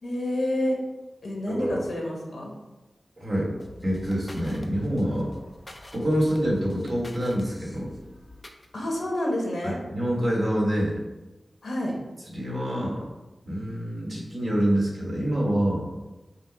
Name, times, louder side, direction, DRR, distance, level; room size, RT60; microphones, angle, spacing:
voice 1, 0.0-0.8 1.2-2.5 8.7-9.8 11.6-11.9, left 1 dB, 80° left, -1 dB, 1.0 m, -28 dB
voice 2, 1.5-1.8 3.2-3.6 3.8-5.3 5.9-7.9 9.6-11.0 12.3-13.0 13.4-15.9, equal, 55° right, -4 dB, 1.5 m, -26 dB
sound 1, 3.6-8.7, left 2 dB, 35° left, 0.4 m, -45 dB
5.6 x 2.1 x 4.1 m, 1.1 s
wide cardioid pair, 80°, 0 cm